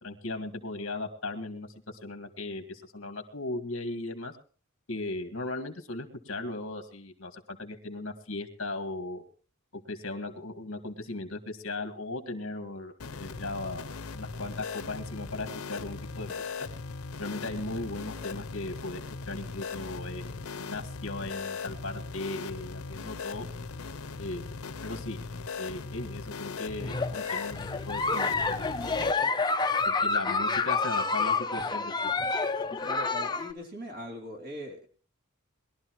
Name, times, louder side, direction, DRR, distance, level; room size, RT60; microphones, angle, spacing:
voice 1, 0.0-4.3 4.9-9.2 9.7-13.9 14.1-16.5 17.2-19.0 19.3-23.5 24.2-24.5 24.8-25.2 25.6-28.8 29.9-32.1, left 2 dB, 60° left, 7 dB, 1.9 m, -37 dB
sound 1, 13.0-29.1, left 4 dB, 80° left, 0.7 m, -39 dB
Giggle, 26.8-33.5, left 4 dB, 20° left, 0.6 m, -28 dB
voice 2, 32.8-34.9, left 1 dB, 45° right, 2 dB, 3.1 m, -40 dB
21.5 x 12.5 x 3.1 m, 0.40 s
head